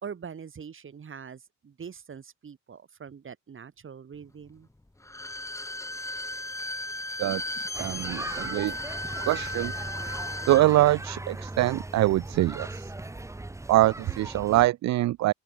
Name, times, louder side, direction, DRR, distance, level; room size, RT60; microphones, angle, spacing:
voice 1, 0.0-4.7, right 7 dB, 40° right, 2.9 m, -43 dB
Bowed string instrument, 5.0-10.7 11.0-11.1, left 1 dB, 10° left, 2.7 m, -35 dB
voice 2, 7.2-8.8 9.2-9.7 10.5-12.9 13.7-15.3, right 15 dB, 65° right, 0.5 m, -24 dB
sound 1, 7.7-14.7, right 2 dB, 10° right, 1.1 m, -38 dB
open air
cardioid pair, 90°, 30 cm